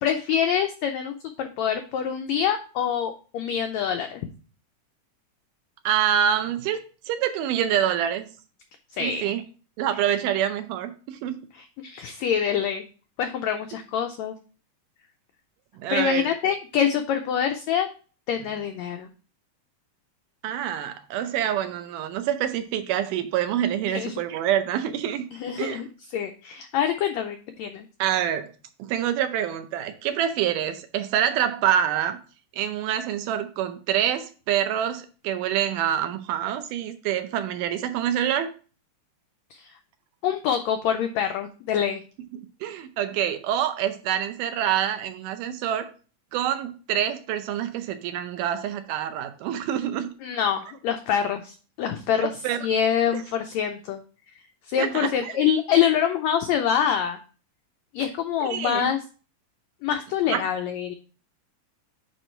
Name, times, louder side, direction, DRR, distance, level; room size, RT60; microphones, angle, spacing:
voice 1, 0.0-4.3 9.0-9.3 11.8-12.8 13.2-14.3 15.9-17.9 18.3-19.1 23.9-24.1 25.4-25.9 26.1-27.8 39.6-39.7 40.2-42.0 50.2-52.3 52.6-54.0 54.7-57.2 57.9-59.0 59.8-60.9, left 8 dB, 90° left, 6 dB, 1.5 m, -25 dB
voice 2, 5.9-6.8 7.1-8.3 9.0-9.4 9.8-11.4 15.8-16.5 20.4-25.3 25.6-25.8 28.0-28.5 28.8-32.2 32.5-38.5 42.6-45.9 46.3-50.1 52.2-52.7 53.1-53.2 54.8-55.4 58.4-58.9 60.3-60.4, right 10 dB, 80° right, 9 dB, 2.2 m, -26 dB
9.1 x 3.1 x 4.3 m, 0.37 s
omnidirectional pair, 3.8 m